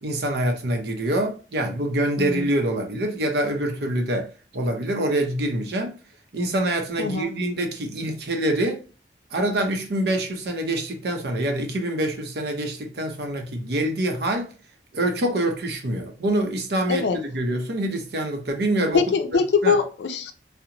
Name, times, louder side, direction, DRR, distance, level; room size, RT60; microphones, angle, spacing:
voice 1, 0.0-4.3 4.5-6.0 6.3-8.8 9.3-14.5 14.9-19.0 19.6-19.7, right 1 dB, 70° right, 0.6 m, -25 dB
voice 2, 2.2-2.5 7.0-7.4 16.9-17.2 18.9-20.3, left 5 dB, 75° left, 0.4 m, -23 dB
2.8 x 2.1 x 2.5 m
head